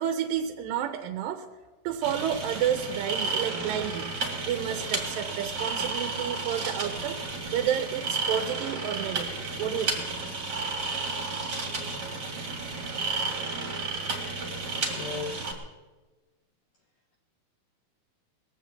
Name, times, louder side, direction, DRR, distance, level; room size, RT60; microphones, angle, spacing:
voice 1, 0.0-1.5 1.8-4.1 4.5-7.2 7.5-10.0, right 9 dB, 75° right, 7 dB, 2.2 m, -30 dB
sound 1, 2.0-15.5, right 3 dB, 35° right, 1.8 m, -32 dB
voice 2, 14.8-15.5, left 5 dB, 80° left, 2 dB, 1.5 m, -37 dB
20.0 x 7.1 x 7.7 m, 1.2 s
omnidirectional pair, 4.6 m